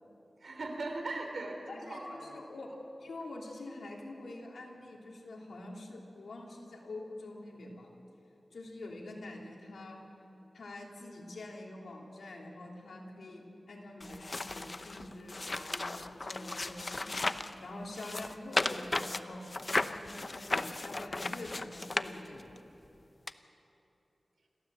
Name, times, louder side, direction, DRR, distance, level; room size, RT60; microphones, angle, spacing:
voice 1, 0.4-2.8, right 2 dB, 75° right, 3 dB, 3.3 m, -40 dB
voice 2, 1.7-2.7 3.0-7.9 8.5-10.0 10.5-19.4 19.7-22.5, left 2 dB, 90° left, -1 dB, 3.0 m, -45 dB
sound 1, 14.0-17.5 17.9-22.6 23.3-23.4, left 2 dB, 40° left, 0.7 m, -35 dB
29.0 x 13.0 x 7.6 m, 3.0 s
wide cardioid pair, 65°, 0 cm